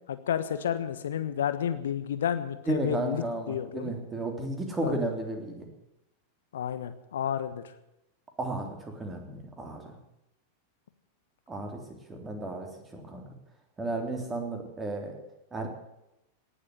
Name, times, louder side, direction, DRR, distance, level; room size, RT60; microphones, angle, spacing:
voice 1, 0.1-3.9 4.8-5.1 6.5-7.6, left 9 dB, 60° left, 11 dB, 1.3 m, -31 dB
voice 2, 2.7-5.7 8.4-9.8 11.5-11.8 12.1-13.2 13.8-15.1 15.5-15.7, right 2 dB, 15° right, 3 dB, 3.4 m, -33 dB
18.5 x 7.9 x 9.8 m, 0.89 s
figure-of-eight pair, 90°, 0 cm